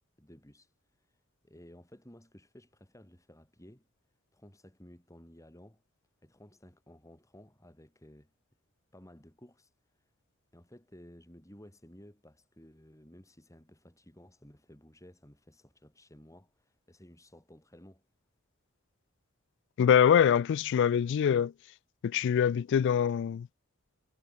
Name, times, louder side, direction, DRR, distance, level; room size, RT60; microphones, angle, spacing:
voice 1, 0.2-0.7 1.0-1.2 1.4-3.9 4.3-5.8 6.2-8.3 8.9-9.7 10.5-18.1, equal, 15° left, 5.7 m, -55 dB
voice 2, 19.8-21.5 22.0-23.5, left 8 dB, 60° left, 0.3 m, -24 dB
head